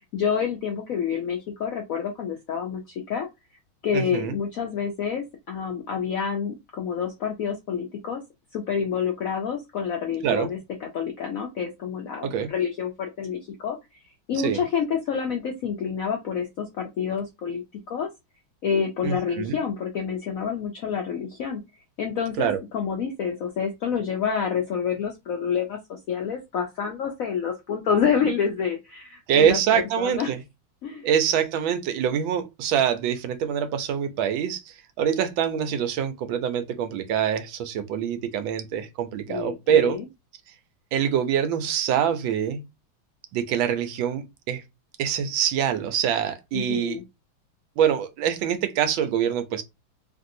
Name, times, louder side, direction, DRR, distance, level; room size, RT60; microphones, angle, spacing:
voice 1, 0.1-3.3 3.8-8.2 8.5-10.6 10.9-13.8 14.3-18.1 18.6-21.6 22.0-30.3 30.8-31.1 39.3-40.1 46.5-47.0, left 7 dB, 75° left, 0.7 m, -28 dB
voice 2, 3.9-4.3 10.2-10.5 12.2-12.5 14.4-14.6 19.0-19.6 22.4-22.6 29.3-30.4 31.0-34.6 35.0-40.0 40.9-42.6 43.3-44.6 45.0-47.0 47.8-49.6, right 9 dB, 90° right, 1.4 m, -24 dB
3.2 x 2.6 x 2.5 m
omnidirectional pair, 2.1 m